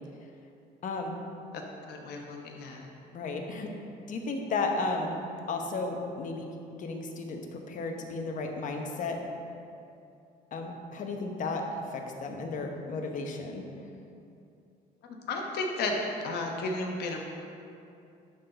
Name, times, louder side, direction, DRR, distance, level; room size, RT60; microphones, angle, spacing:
voice 1, 0.8-1.2 3.1-3.7 4.1-5.2 5.5-6.5 6.8-9.2 10.5-13.7, left 3 dB, 50° left, 3 dB, 0.9 m, -34 dB
voice 2, 1.9-2.9 15.0-15.9 16.2-17.2, left 3 dB, 75° left, 1 dB, 1.1 m, -33 dB
11.0 x 3.9 x 3.9 m, 2.6 s
cardioid pair, 110°, 17 cm